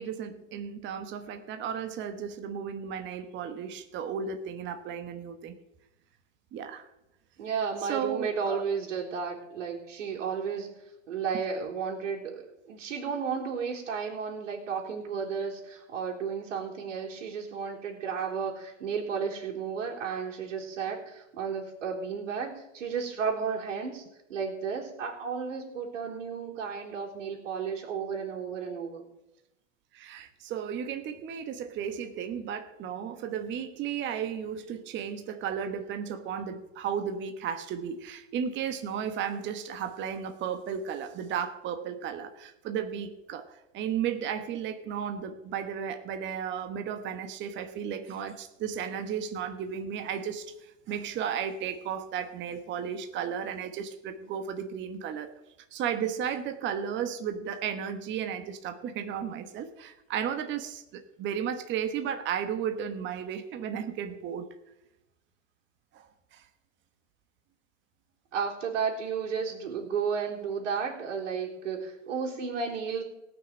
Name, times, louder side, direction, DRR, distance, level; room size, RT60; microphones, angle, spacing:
voice 1, 0.0-5.5 6.5-6.9 7.8-8.6 29.9-55.3 55.7-64.5 65.9-66.5, right 8 dB, 30° right, 8 dB, 1.2 m, -34 dB
voice 2, 7.4-10.8 11.1-24.0 24.3-29.0 68.3-73.0, right 6 dB, 75° right, -4 dB, 3.8 m, -33 dB
18.0 x 6.3 x 7.4 m, 0.92 s
hypercardioid pair, 120°, 37 cm